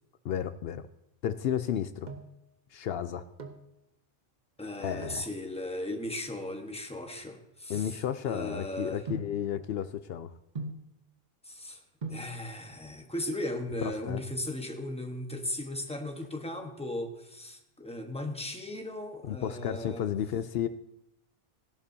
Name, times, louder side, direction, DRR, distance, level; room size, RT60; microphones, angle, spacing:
voice 1, 0.2-0.9 1.2-2.1 2.7-3.2 4.8-5.3 7.7-10.3 13.8-14.2 19.2-20.7, left 9 dB, 75° left, 12 dB, 0.8 m, -32 dB
sound 1, 2.1-2.5 3.2-3.7 5.0-5.3 6.1-8.5 9.1-9.5 10.6-11.0 11.7-11.8 12.0-12.4 13.5-14.0 14.3-14.4 14.6-14.8 15.2-15.6 15.9-16.9 17.3-17.8 18.1-19.3 19.6-19.7, right 3 dB, 45° right, 1.1 m, -43 dB
voice 2, 4.6-9.0 11.4-11.8 12.1-20.1, left 1 dB, 5° left, 3 dB, 1.2 m, -37 dB
17.0 x 11.0 x 2.7 m, 0.86 s
omnidirectional pair, 1.0 m